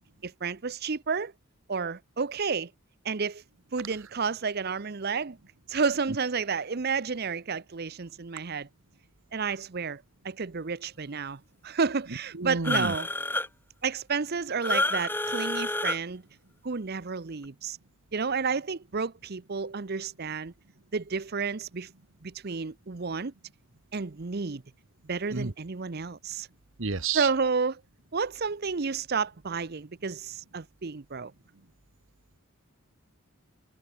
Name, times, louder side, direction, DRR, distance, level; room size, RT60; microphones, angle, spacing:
voice 1, 0.2-1.3 1.7-2.7 3.0-3.4 3.7-5.4 5.7-8.7 9.3-13.1 13.8-16.2 16.6-17.8 18.1-20.5 20.9-21.9 22.2-23.3 23.9-24.6 25.0-26.5 27.1-27.8 28.1-31.3, right 5 dB, 50° right, 0.7 m, -31 dB
voice 2, 12.3-12.9 25.3-25.5 26.8-27.3, right 4 dB, 65° right, 1.3 m, -30 dB
sound 1, 12.6-13.5 14.6-16.0, left 2 dB, 10° left, 2.2 m, -28 dB
head